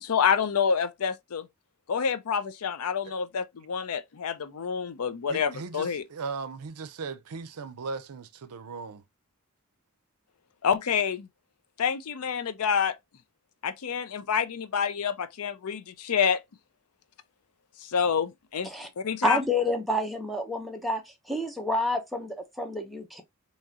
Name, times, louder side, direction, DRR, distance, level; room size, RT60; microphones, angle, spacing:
voice 1, 0.0-1.5 1.9-6.0 10.6-11.3 11.8-13.0 13.6-16.4 17.8-18.7 19.0-19.4, left 7 dB, 75° left, 0.5 m, -27 dB
voice 2, 5.3-9.0, right 4 dB, 80° right, 0.5 m, -38 dB
voice 3, 19.2-21.0 21.3-23.2, left 1 dB, ahead, 0.8 m, -28 dB
3.6 x 2.9 x 2.8 m
head